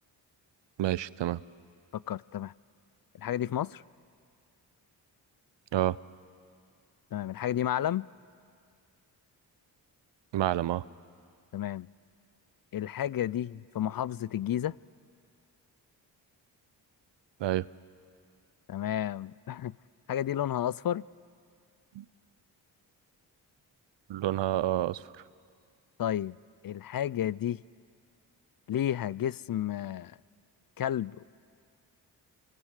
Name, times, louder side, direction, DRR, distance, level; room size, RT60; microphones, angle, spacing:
voice 1, 0.8-1.4 5.7-6.0 10.3-10.8 17.4-17.7 21.9-22.0 24.1-25.0, right 13 dB, 65° right, 19 dB, 0.8 m, -28 dB
voice 2, 1.9-2.5 3.2-3.8 7.1-8.1 11.5-11.9 12.7-14.8 18.7-19.7 20.1-21.0 26.0-26.4 26.6-27.6 28.7-30.2 30.8-31.2, left 11 dB, 50° left, 21 dB, 0.6 m, -31 dB
30.0 x 25.5 x 6.6 m, 2.2 s
supercardioid pair, 45°, 46 cm